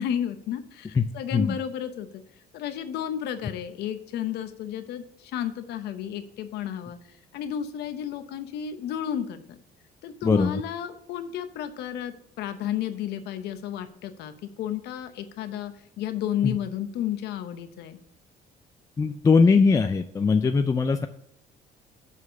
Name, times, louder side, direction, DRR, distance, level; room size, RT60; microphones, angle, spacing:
voice 1, 0.0-2.2 2.5-7.0 7.3-9.6 10.0-18.0, left 9 dB, 80° left, 9 dB, 0.9 m, -32 dB
voice 2, 10.2-10.6 16.4-16.6 19.0-21.1, left 4 dB, 20° left, 7 dB, 0.4 m, -21 dB
7.2 x 4.2 x 6.5 m, 0.73 s
cardioid pair, 110°, 17 cm